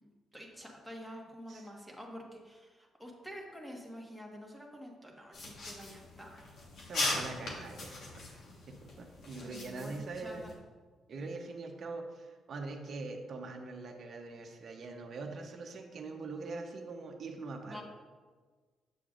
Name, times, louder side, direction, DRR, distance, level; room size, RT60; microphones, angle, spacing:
voice 1, 0.0-6.5 9.4-10.5 17.7-17.8, equal, ahead, -1 dB, 1.4 m, -48 dB
sound 1, 5.3-10.5, left 2 dB, 65° left, 1.5 m, -40 dB
voice 2, 6.9-8.0 8.7-10.4 11.1-17.8, right 3 dB, 55° right, 3 dB, 0.9 m, -43 dB
7.8 x 6.7 x 2.5 m, 1.4 s
cardioid pair, 90°, 0 cm